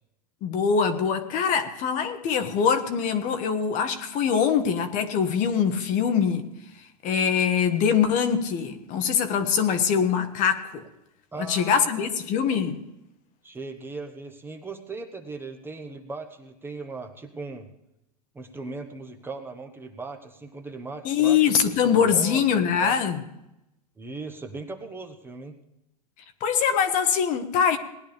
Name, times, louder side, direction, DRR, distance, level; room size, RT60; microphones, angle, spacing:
voice 1, 0.4-6.5 7.0-10.8 11.5-12.8 21.0-23.2 26.4-27.8, left 7 dB, 40° left, 1.3 m, -23 dB
voice 2, 11.3-12.1 13.4-17.7 18.3-21.4 21.6-22.9 24.0-25.5, right 3 dB, 10° right, 1.1 m, -38 dB
19.0 x 10.5 x 3.5 m
hypercardioid pair, 125°, 21 cm